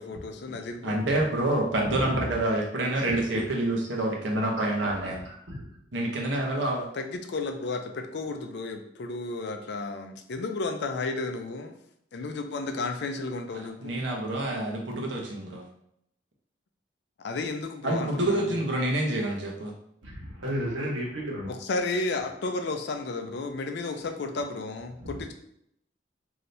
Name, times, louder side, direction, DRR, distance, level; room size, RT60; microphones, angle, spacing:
voice 1, 0.0-1.0 6.9-11.7 12.1-14.0 17.2-18.6 21.5-25.3, left 3 dB, 60° left, 6 dB, 0.4 m, -33 dB
voice 2, 0.8-5.2 5.9-6.9 13.5-15.6 17.8-19.7, right 1 dB, 70° right, -1 dB, 0.8 m, -27 dB
voice 3, 1.8-2.2 2.9-3.4 4.8-5.6 20.0-21.5 25.0-25.1, equal, 85° right, -4 dB, 1.2 m, -34 dB
3.2 x 2.7 x 2.6 m, 0.75 s
head